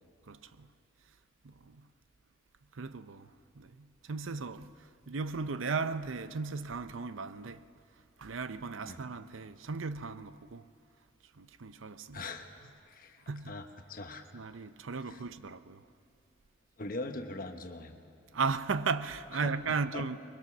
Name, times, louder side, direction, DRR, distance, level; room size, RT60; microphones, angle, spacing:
voice 1, 0.3-0.7 1.4-1.9 2.7-7.6 8.2-10.7 11.3-12.2 13.3-13.6 14.3-15.9 18.3-20.2, right 4 dB, 80° right, 0.6 m, -36 dB
voice 2, 12.1-12.5 12.9-14.3 15.1-15.2 16.8-18.0 19.4-20.0, left 2 dB, 45° left, 1.2 m, -42 dB
23.5 x 22.0 x 6.0 m
head